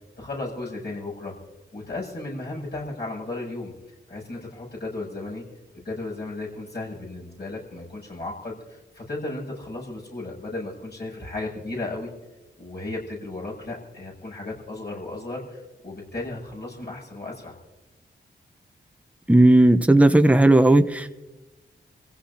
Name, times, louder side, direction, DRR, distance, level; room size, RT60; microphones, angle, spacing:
voice 1, 0.2-1.3 1.7-3.7 4.1-5.4 5.7-12.1 12.6-17.6, left 2 dB, 60° left, 7.7 m, -35 dB
voice 2, 19.3-21.1, right 1 dB, 5° right, 1.0 m, -15 dB
28.5 x 16.0 x 2.9 m
cardioid pair, 45°, 19 cm